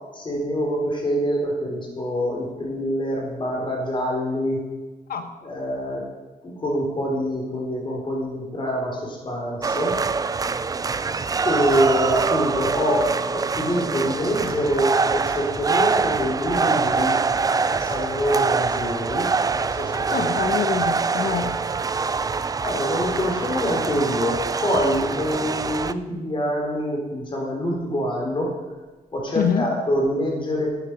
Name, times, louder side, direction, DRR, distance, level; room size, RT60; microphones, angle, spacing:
voice 1, 0.1-4.6 5.4-6.1 6.4-10.0 11.4-17.2 17.5-19.3 19.5-20.3 22.6-28.5 29.1-30.7, equal, 35° left, -1 dB, 4.1 m, -25 dB
sound 1, 9.6-25.9, right 4 dB, 25° right, 0.4 m, -24 dB
voice 2, 20.1-21.6 29.3-29.7, left 6 dB, 75° left, 8 dB, 1.2 m, -25 dB
12.5 x 8.9 x 6.3 m, 1.2 s
wide cardioid pair, 140°, 15 cm